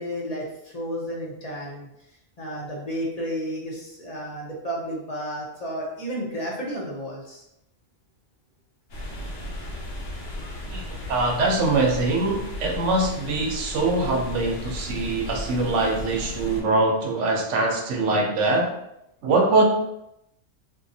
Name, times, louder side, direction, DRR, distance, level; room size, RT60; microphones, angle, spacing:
voice 1, 0.0-1.9 2.4-7.4 14.9-15.1, equal, 40° left, -3 dB, 0.7 m, -32 dB
sound 1, 8.9-16.6, left 1 dB, 85° left, 1.2 m, -35 dB
voice 2, 10.7-18.7 19.2-19.6, right 2 dB, 80° right, 2 dB, 1.0 m, -23 dB
3.7 x 2.7 x 2.6 m, 0.82 s
omnidirectional pair, 1.2 m